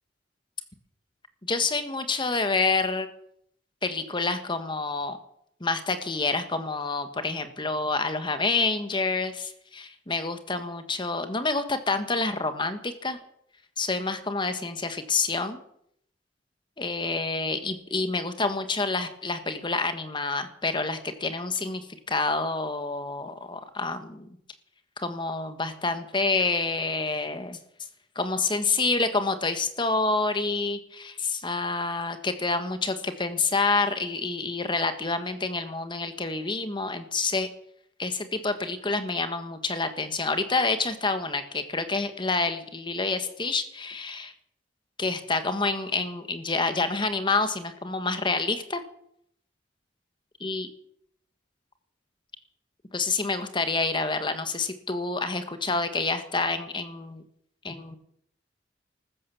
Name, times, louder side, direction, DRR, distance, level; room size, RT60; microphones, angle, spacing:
voice 1, 1.4-3.1 3.8-5.2 5.6-13.2 13.8-15.6 16.8-24.3 25.0-27.6 28.1-37.5 38.0-44.3 45.0-48.8 50.4-50.7 52.9-57.2 57.6-58.0, left 3 dB, 25° left, 9 dB, 1.5 m, -28 dB
15.0 x 13.5 x 7.1 m, 0.70 s
head